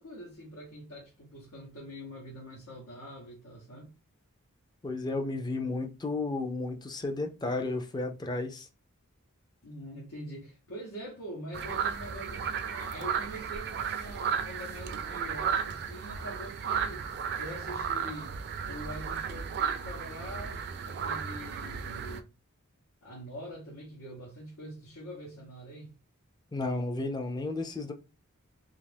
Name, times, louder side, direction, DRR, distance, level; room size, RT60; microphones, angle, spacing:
voice 1, 0.0-3.9 9.6-17.1 17.4-18.4 18.6-22.3 23.0-25.9, equal, 85° left, 0.9 m, -44 dB
voice 2, 4.8-8.7 26.5-27.9, left 2 dB, 20° left, 0.4 m, -33 dB
sound 1, 11.5-22.2, right 7 dB, 50° right, 0.3 m, -34 dB
2.5 x 2.4 x 3.3 m
head